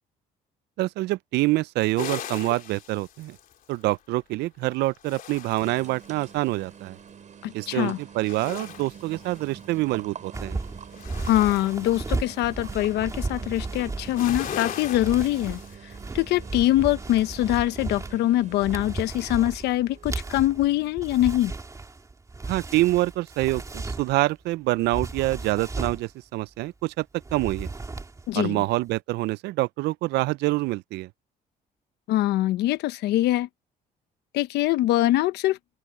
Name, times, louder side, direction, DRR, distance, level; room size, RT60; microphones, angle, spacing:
voice 1, 0.8-3.4 3.7-7.0 7.5-10.6 22.4-27.1 27.3-27.7 28.3-31.1, right 18 dB, 80° right, 0.5 m, -26 dB
sound 1, 2.0-3.9 4.7-6.4 8.1-10.0 10.4-12.8 14.0-15.7, left 9 dB, 55° left, 3.1 m, -39 dB
sound 2, 5.6-20.3, right 8 dB, 45° right, 5.4 m, -46 dB
voice 2, 7.4-8.0 11.2-15.6 16.1-21.5 28.3-28.6 32.1-33.5 34.3-35.6, left 15 dB, 80° left, 1.1 m, -23 dB
sound 3, 10.3-24.3 24.8-26.1 27.2-28.3 28.6-28.9, right 3 dB, 20° right, 3.1 m, -35 dB
open air
cardioid pair, 110°, 17 cm